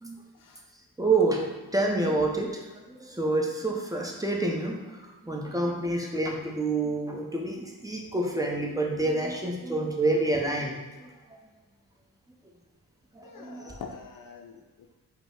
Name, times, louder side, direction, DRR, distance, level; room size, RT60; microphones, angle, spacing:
voice 1, 1.0-1.4 1.7-2.6 2.9-5.0 5.2-11.4 13.1-13.7, right 2 dB, 10° right, -1 dB, 0.8 m, -28 dB
voice 2, 13.2-14.9, left 5 dB, 55° left, 4 dB, 0.5 m, -45 dB
4.9 x 2.2 x 3.7 m, 1.2 s
supercardioid pair, 45°, 39 cm